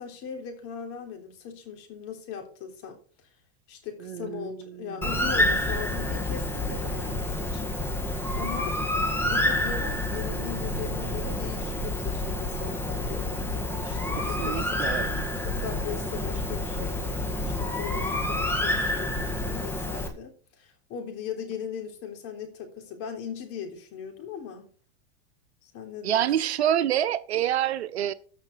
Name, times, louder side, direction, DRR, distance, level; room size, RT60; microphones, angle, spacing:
voice 1, 0.0-3.0 3.7-7.8 8.3-8.8 9.2-14.8 15.4-24.7 25.6-26.3, left 7 dB, 45° left, 3.5 m, -39 dB
voice 2, 4.0-5.5 14.1-15.3 26.0-28.1, right 11 dB, 90° right, 0.8 m, -28 dB
Bird, 5.0-20.1, left 1 dB, 5° left, 1.8 m, -28 dB
14.0 x 5.9 x 4.6 m
hypercardioid pair, 120°, 32 cm